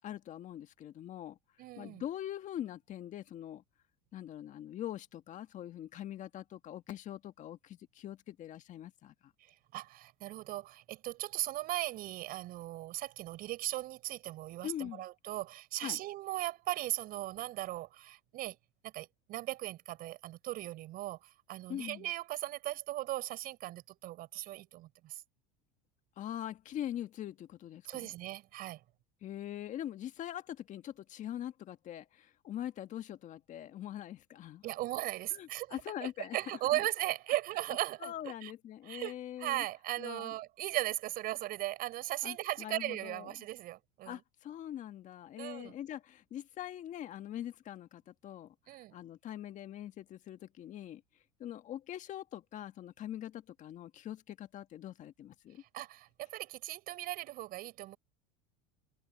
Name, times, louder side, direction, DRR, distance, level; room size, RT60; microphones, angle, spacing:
voice 1, 0.0-1.4 1.8-3.6 4.1-9.3 14.6-15.1 15.8-16.0 21.7-22.1 26.2-28.1 29.2-34.6 35.3-36.8 38.0-39.6 40.0-40.3 42.2-43.3 44.0-51.0 51.4-55.6, left 11 dB, 45° left, 1.8 m, -43 dB
voice 2, 1.6-2.0 9.4-18.6 18.8-25.2 27.8-28.8 34.6-38.5 38.9-39.1 39.4-44.2 45.4-45.8 48.7-49.0 55.6-58.0, right 16 dB, 55° right, 6.2 m, -38 dB
supercardioid pair, 110°, 18 cm